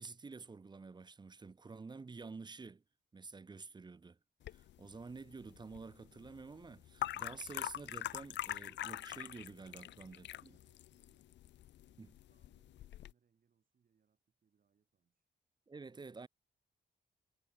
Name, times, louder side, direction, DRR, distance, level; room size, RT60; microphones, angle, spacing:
voice 1, 0.0-2.8 3.1-4.2 4.5-10.6 12.0-12.1 15.7-16.3, right 4 dB, 25° right, 0.8 m, -50 dB
sound 1, 4.4-13.1, left 13 dB, 80° left, 0.4 m, -45 dB
voice 2, 9.8-15.3, right 6 dB, 50° right, 5.8 m, -78 dB
wide cardioid pair, 150°, 19 cm